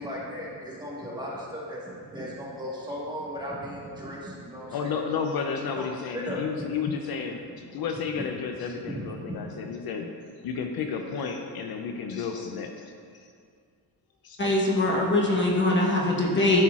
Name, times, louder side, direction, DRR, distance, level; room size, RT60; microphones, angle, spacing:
voice 1, 0.0-4.9 5.7-5.9 6.1-6.5 8.2-8.3 8.7-9.5, equal, 10° right, -5 dB, 1.4 m, -36 dB
voice 2, 4.7-10.1 10.4-13.2 14.2-14.4, left 6 dB, 65° left, 4 dB, 0.6 m, -32 dB
voice 3, 14.4-16.6, left 2 dB, 30° left, -2 dB, 1.2 m, -22 dB
11.0 x 5.7 x 2.4 m, 2.2 s
cardioid pair, 125°, 40 cm